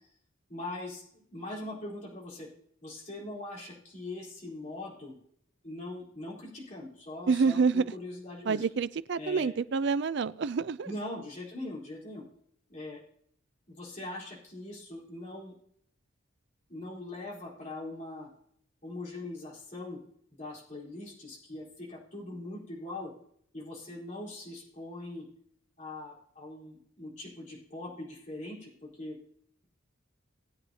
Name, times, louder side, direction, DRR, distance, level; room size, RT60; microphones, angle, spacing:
voice 1, 0.5-2.5 2.8-5.2 5.6-8.7 9.2-9.5 10.8-12.2 12.7-13.0 13.7-15.5 16.7-18.3 18.8-20.0 20.3-23.1 23.5-25.3 25.8-29.2, left 2 dB, 35° left, -5 dB, 4.0 m, -41 dB
voice 2, 7.3-7.9 8.5-10.9, right 5 dB, 55° right, 15 dB, 0.4 m, -27 dB
19.0 x 8.6 x 2.8 m, 0.67 s
head